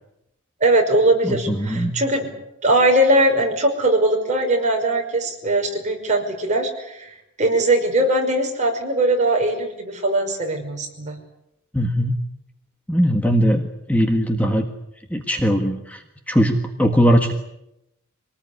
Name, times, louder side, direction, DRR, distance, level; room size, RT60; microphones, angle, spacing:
voice 1, 0.6-2.3 2.6-11.2, right 1 dB, 35° right, 2 dB, 5.7 m, -20 dB
voice 2, 1.2-1.9 11.7-12.1 12.9-13.6 13.9-14.6 15.1-17.3, equal, 5° left, 4 dB, 1.6 m, -19 dB
25.5 x 19.0 x 9.6 m, 0.87 s
head